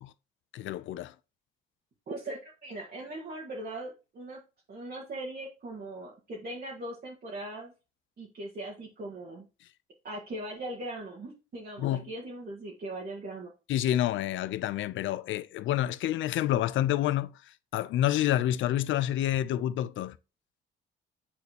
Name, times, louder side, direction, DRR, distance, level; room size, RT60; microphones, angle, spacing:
voice 1, 0.5-1.1 11.8-12.1 13.7-17.3 17.7-20.2, left 12 dB, 80° left, 0.5 m, -28 dB
voice 2, 2.1-4.4 4.7-7.7 8.2-9.5 10.0-13.5, right 1 dB, 50° right, 1.8 m, -40 dB
8.7 x 4.2 x 2.9 m
cardioid pair, 90°, 20 cm